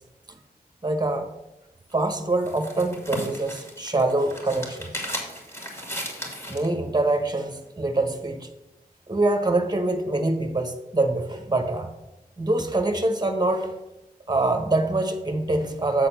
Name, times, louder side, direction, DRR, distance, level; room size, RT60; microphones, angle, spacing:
voice 1, 0.8-1.3 1.9-4.9 6.5-8.5 9.1-11.9 12.4-13.7 14.3-16.1, right 2 dB, 25° right, 6 dB, 1.2 m, -24 dB
sound 1, 1.9-6.7, equal, 15° left, 2.4 m, -35 dB
7.8 x 4.2 x 6.7 m, 0.92 s
wide cardioid pair, 65°, 16 cm